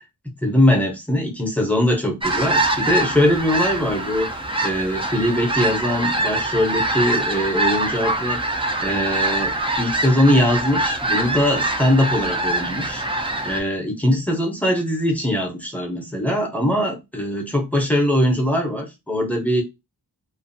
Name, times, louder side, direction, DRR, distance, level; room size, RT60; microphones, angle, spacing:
voice 1, 0.4-4.3 4.6-13.0 13.4-19.6, left 1 dB, 5° left, 0.8 m, -21 dB
sound 1, 2.2-13.6, right 2 dB, 15° right, 0.5 m, -24 dB
2.6 x 2.4 x 2.7 m
wide cardioid pair, 80°, 40 cm